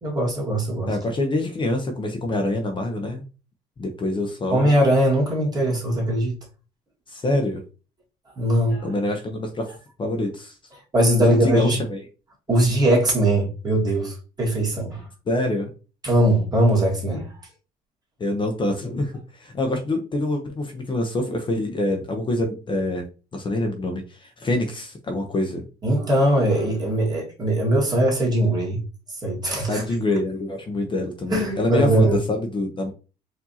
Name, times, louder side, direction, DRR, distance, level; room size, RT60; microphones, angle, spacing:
voice 1, 0.0-1.0 4.5-6.4 8.4-8.9 10.9-11.8 12.5-15.1 16.0-17.3 25.8-28.8 29.2-29.8 31.3-32.2, right 1 dB, 25° right, 1.8 m, -20 dB
voice 2, 0.9-3.2 3.8-4.7 7.1-7.6 8.8-9.7 10.0-10.6 11.2-12.0 15.3-15.7 18.2-23.1 23.3-25.6 29.7-32.9, left 1 dB, 30° left, 0.7 m, -25 dB
4.6 x 2.7 x 2.8 m
cardioid pair, 110°, 17 cm